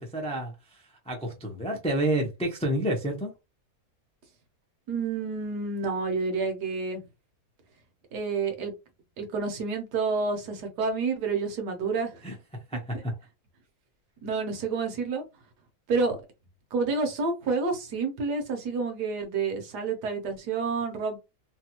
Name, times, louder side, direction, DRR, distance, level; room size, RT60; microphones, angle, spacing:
voice 1, 0.0-3.3 12.2-12.4 12.7-13.2, right 1 dB, 10° left, 0.4 m, -29 dB
voice 2, 4.9-7.0 8.1-8.7 9.2-12.2 14.2-15.2 15.9-16.2 16.7-21.2, right 4 dB, 80° right, 1.5 m, -29 dB
3.3 x 2.3 x 2.9 m
omnidirectional pair, 1.7 m